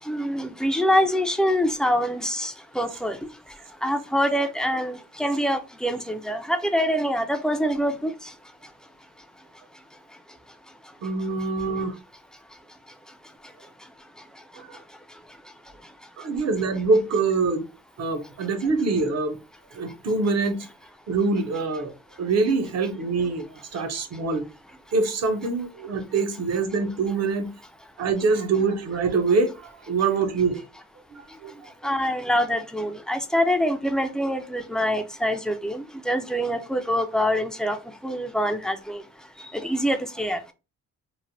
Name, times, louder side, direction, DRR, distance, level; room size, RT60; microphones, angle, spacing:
voice 1, 0.1-3.2 3.8-8.1 31.8-37.8 38.0-39.0 39.6-40.4, equal, ahead, 0.3 m, -25 dB
voice 2, 11.0-12.0 14.5-14.8 16.2-17.6 18.0-19.4 19.7-20.7 21.1-24.5 24.9-27.5 28.0-30.6 31.1-31.7, right 4 dB, 55° right, 0.6 m, -25 dB
3.1 x 2.1 x 2.6 m
cardioid pair, 105°, 30 cm